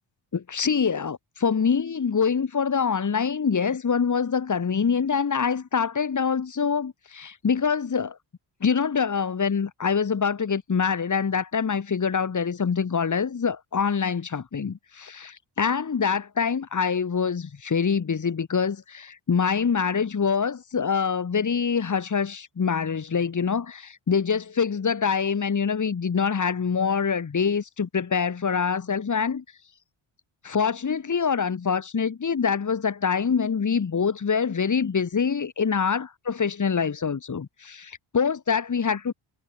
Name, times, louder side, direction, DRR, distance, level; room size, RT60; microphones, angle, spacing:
voice 1, 0.3-8.2 8.6-29.4 30.4-39.1, left 6 dB, 35° left, 6.2 m, -25 dB
cardioid pair, 135°, 48 cm